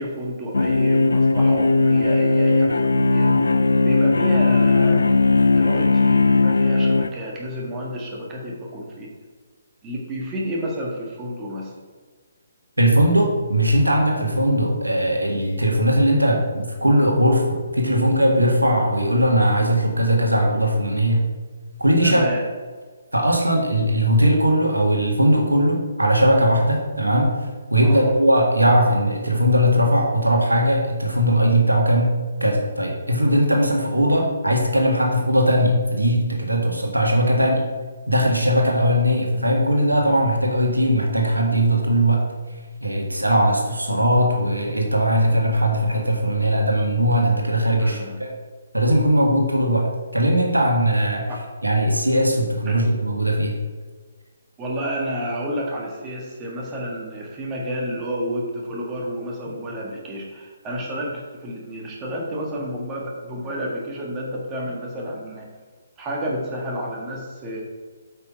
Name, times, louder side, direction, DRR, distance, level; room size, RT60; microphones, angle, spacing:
voice 1, 0.0-3.5 3.8-5.2 5.6-9.1 9.8-11.7 22.0-22.4 27.8-28.1 47.8-48.2 51.3-51.4 52.7-52.8 54.6-65.5 66.0-67.6, equal, 15° right, -2 dB, 1.6 m, -30 dB
sound 1, 0.5-7.1, left 3 dB, 70° left, 0.4 m, -17 dB
voice 2, 12.8-21.3 21.8-22.3 23.1-27.4 27.7-37.7 38.1-42.3 42.8-48.3 48.7-51.2 51.6-53.6, equal, 80° right, 1 dB, 1.8 m, -19 dB
8.7 x 5.8 x 4.8 m, 1.4 s
figure-of-eight pair, 135°, 0 cm